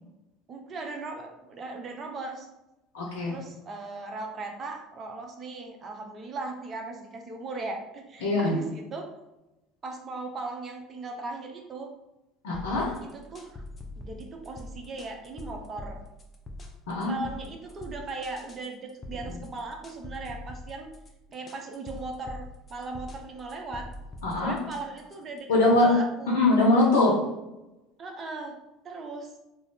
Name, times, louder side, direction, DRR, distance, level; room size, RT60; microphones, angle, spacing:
voice 1, 0.5-2.5 3.3-9.1 9.8-11.9 13.1-13.6 14.0-16.0 17.1-20.9 21.3-23.9 24.4-25.5 25.8-26.4 28.0-28.6 28.8-29.3, right 3 dB, 40° right, 3 dB, 0.6 m, -38 dB
voice 2, 2.9-3.4 8.2-8.5 12.4-13.0 16.9-17.1 19.2-19.3 24.2-24.5 25.5-25.9 26.3-27.1, left 2 dB, 75° left, -2 dB, 0.6 m, -22 dB
sound 1, 12.5-25.4, left 1 dB, 30° left, 0.5 m, -43 dB
2.4 x 2.0 x 3.4 m, 0.99 s
hypercardioid pair, 70°, 0 cm